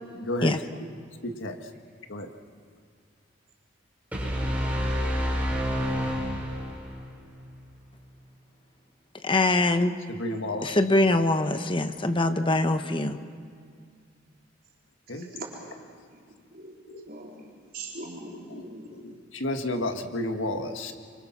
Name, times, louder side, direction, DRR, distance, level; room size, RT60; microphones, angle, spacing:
voice 1, 0.1-0.9 1.2-1.6 2.1-2.3 10.1-10.8 15.1-15.3 16.9-17.0 18.5-18.6 18.9-20.9, left 1 dB, 75° left, 5 dB, 1.7 m, -32 dB
sound 1, 4.1-7.0, equal, 10° right, 5.0 m, -28 dB
voice 2, 9.2-10.0 10.6-13.2, left 2 dB, 25° left, 8 dB, 1.0 m, -23 dB
voice 3, 15.1-15.5 16.5-16.7 17.1-18.9, right 2 dB, 50° right, -3 dB, 4.0 m, -41 dB
27.0 x 25.0 x 6.0 m, 2.2 s
head